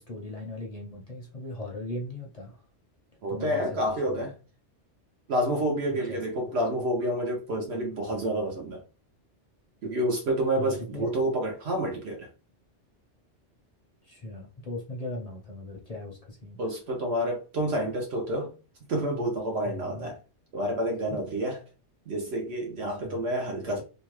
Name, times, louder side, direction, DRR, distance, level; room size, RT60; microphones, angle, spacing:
voice 1, 0.0-2.6 3.3-4.2 5.9-6.4 10.6-11.1 14.0-16.6 19.6-20.1 21.1-21.2 22.9-23.2, left 2 dB, 40° left, 0.6 m, -39 dB
voice 2, 3.2-4.3 5.3-8.8 9.8-12.3 16.6-18.5 18.9-20.2 20.5-21.6 22.1-23.8, right 1 dB, 65° right, 0.9 m, -29 dB
2.7 x 2.2 x 3.0 m
omnidirectional pair, 1.2 m